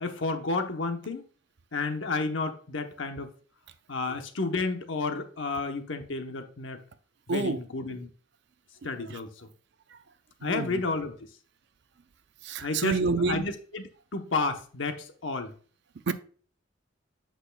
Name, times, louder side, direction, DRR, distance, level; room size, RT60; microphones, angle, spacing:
voice 1, 0.0-1.2 1.7-3.3 3.9-6.8 7.3-8.1 8.8-9.5 10.4-11.1 12.6-15.5, left 3 dB, 70° left, 0.9 m, -31 dB
voice 2, 7.3-7.6 9.1-9.2 10.4-10.8 12.4-13.5 16.1-16.2, right 4 dB, 60° right, 0.5 m, -28 dB
8.1 x 6.2 x 2.3 m
head